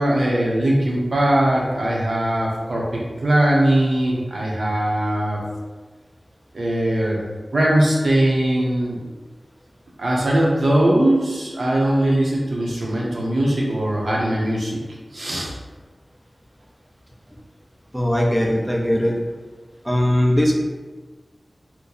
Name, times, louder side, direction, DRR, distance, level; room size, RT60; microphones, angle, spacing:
voice 1, 0.0-5.4 6.5-7.2 7.5-9.0 10.0-14.8 15.1-15.5, right 1 dB, 75° right, -4 dB, 0.8 m, -20 dB
voice 2, 17.9-19.1 19.8-20.6, left 1 dB, 5° right, -2 dB, 0.6 m, -19 dB
3.0 x 2.1 x 3.9 m, 1.3 s
wide cardioid pair, 75°, 0 cm